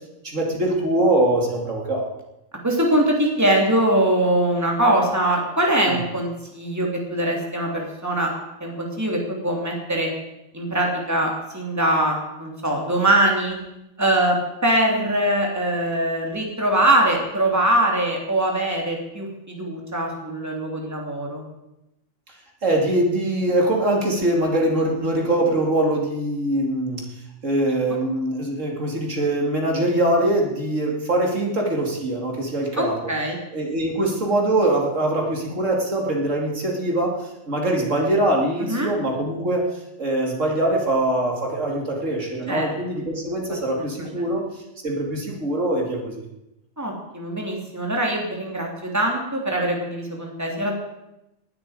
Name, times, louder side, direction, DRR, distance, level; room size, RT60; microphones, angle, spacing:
voice 1, 0.2-2.1 5.9-6.0 22.6-27.0 27.4-33.0 33.5-39.7 40.0-46.2, right 1 dB, 65° right, 0 dB, 3.0 m, -23 dB
voice 2, 2.6-8.3 8.6-10.1 10.5-13.6 14.0-14.4 14.6-21.4 32.8-33.4 38.6-38.9 42.5-42.7 46.8-48.7 48.9-50.7, right 1 dB, 10° right, 0 dB, 3.0 m, -22 dB
19.0 x 12.0 x 5.0 m, 0.89 s
omnidirectional pair, 1.4 m